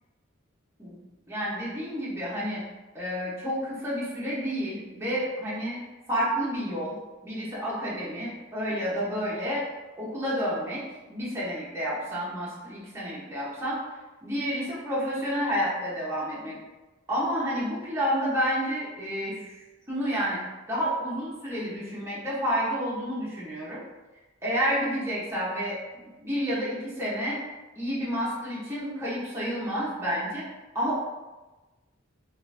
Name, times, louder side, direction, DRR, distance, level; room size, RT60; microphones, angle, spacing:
voice 1, 1.3-2.6 2.9-5.8 6.1-7.0 7.2-9.6 10.0-13.8 14.2-16.6 17.1-19.5 19.9-20.4 20.7-23.8 24.4-25.8 26.2-27.4 27.8-30.4 30.7-31.0, equal, 15° right, -8 dB, 0.7 m, -30 dB
3.6 x 2.4 x 2.4 m, 1.1 s
head